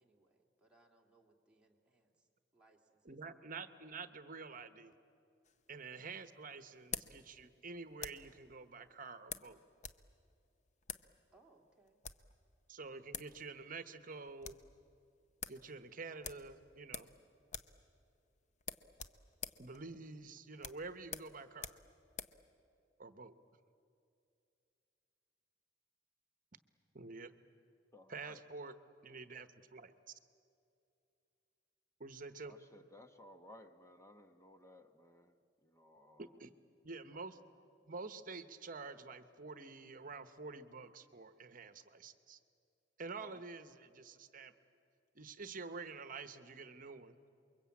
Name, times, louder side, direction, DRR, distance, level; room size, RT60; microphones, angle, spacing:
voice 1, 0.0-3.2 11.3-12.0, right 2 dB, 5° right, -1 dB, 2.5 m, -70 dB
voice 2, 3.0-4.9 5.7-9.6 12.7-14.6 15.5-17.1 19.6-21.8 23.0-23.3 26.9-27.3 28.1-28.7 29.0-29.9 32.0-32.5 36.2-36.5 36.8-37.4 37.8-42.4 43.0-44.5 45.1-47.2, right 4 dB, 50° right, 11 dB, 1.1 m, -48 dB
sound 1, 5.4-8.4 9.3-10.0 10.3-10.4 10.8-11.1 11.8-12.3 12.9-13.0 13.1-13.4 13.7-13.8 14.1-14.7 15.0-15.1 15.4-15.6 16.2-17.2 17.5-17.8 18.1-18.2 18.6-22.4, left 7 dB, 40° left, 0.8 m, -47 dB
voice 3, 27.9-28.4 32.5-36.4 43.2-43.4, left 1 dB, 15° left, 6 dB, 1.0 m, -59 dB
29.0 x 23.0 x 8.5 m, 2.6 s
head